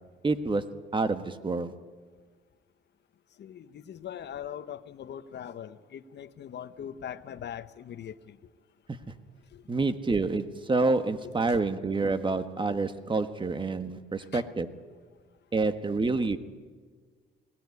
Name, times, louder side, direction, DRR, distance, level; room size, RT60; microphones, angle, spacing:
voice 1, 0.2-1.7 9.7-14.7 15.5-16.4, right 3 dB, 25° right, 10 dB, 1.4 m, -28 dB
voice 2, 3.4-8.4 9.5-9.7 14.3-14.4, left 9 dB, 60° left, 13 dB, 1.1 m, -41 dB
21.0 x 18.0 x 9.7 m, 1.5 s
cardioid pair, 90°, 20 cm